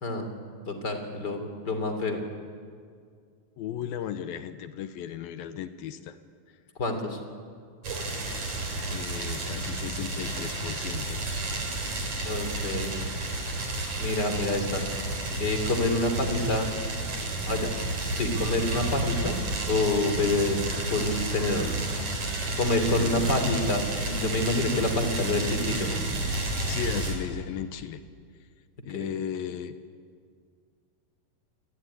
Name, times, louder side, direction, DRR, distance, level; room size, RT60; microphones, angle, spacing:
voice 1, 0.0-0.3 0.7-2.2 6.8-7.2 12.2-12.9 14.0-14.8 15.4-16.7 17.5-17.7 18.2-19.4 19.7-20.6 20.9-21.7 22.5-26.0 28.9-29.1, left 2 dB, 30° left, 6 dB, 3.4 m, -27 dB
voice 2, 3.6-6.2 8.9-11.2 22.9-23.4 26.7-28.0 28.9-29.8, left 9 dB, 80° left, 10 dB, 2.8 m, -35 dB
sound 1, 7.8-27.2, right 2 dB, 50° right, 5.2 m, -31 dB
28.0 x 21.5 x 9.8 m, 2.1 s
omnidirectional pair, 4.3 m